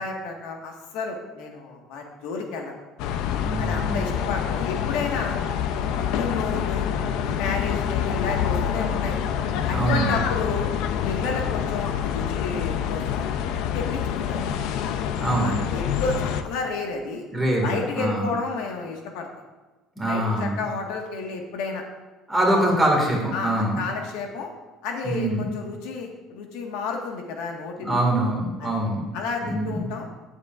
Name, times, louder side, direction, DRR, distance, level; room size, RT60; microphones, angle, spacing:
voice 1, 0.0-2.8 3.6-5.4 5.8-6.9 7.3-9.2 9.7-10.7 11.0-13.3 13.7-14.6 15.4-17.2 17.6-19.3 20.1-21.8 22.5-22.8 23.3-24.5 24.8-28.0 28.6-28.8 29.1-30.1, left 4 dB, 85° left, 1 dB, 1.7 m, -31 dB
sound 1, 3.0-16.4, left 8 dB, 65° left, 0.6 m, -26 dB
voice 2, 3.4-4.0 9.7-10.1 15.2-15.6 17.3-18.3 20.0-20.6 22.3-23.8 25.0-25.5 27.8-29.1 29.4-29.8, right 1 dB, 5° right, -3 dB, 2.1 m, -24 dB
16.5 x 7.3 x 2.5 m, 1.2 s
cardioid pair, 175°, 0 cm